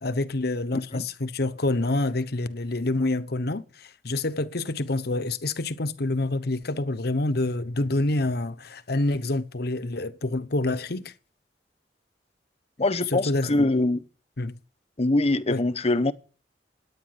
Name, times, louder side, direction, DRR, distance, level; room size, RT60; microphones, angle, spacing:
voice 1, 0.0-11.1 13.1-13.7 14.4-14.6 15.5-15.6, left 2 dB, 65° left, 1.1 m, -27 dB
voice 2, 12.8-14.0 15.0-16.1, left 2 dB, 35° left, 1.0 m, -23 dB
17.5 x 9.8 x 8.0 m
head